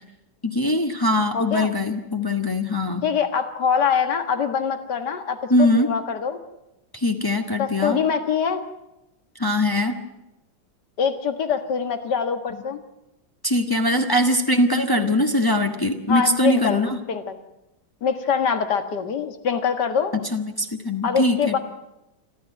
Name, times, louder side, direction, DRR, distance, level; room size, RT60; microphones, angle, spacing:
voice 1, 0.4-3.0 5.5-5.9 6.9-8.0 9.4-10.0 13.4-17.0 20.3-21.6, left 1 dB, 15° left, 4 dB, 1.4 m, -21 dB
voice 2, 1.3-1.7 3.0-6.4 7.6-8.6 11.0-12.8 16.1-16.8 17.1-17.3 18.0-20.1 21.0-21.6, left 6 dB, 65° left, 8 dB, 2.2 m, -24 dB
28.5 x 12.5 x 9.3 m, 0.94 s
omnidirectional pair, 2.0 m